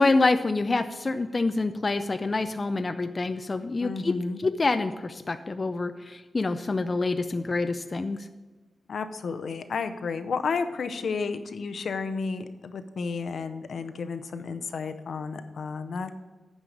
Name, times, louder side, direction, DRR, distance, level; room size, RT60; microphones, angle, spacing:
voice 1, 0.0-4.1 4.4-8.3, left 3 dB, 30° left, 9 dB, 0.3 m, -26 dB
voice 2, 3.8-4.4 8.9-16.1, left 5 dB, 75° left, 9 dB, 0.6 m, -32 dB
9.0 x 5.4 x 6.3 m, 1.3 s
wide cardioid pair, 150°, 0 cm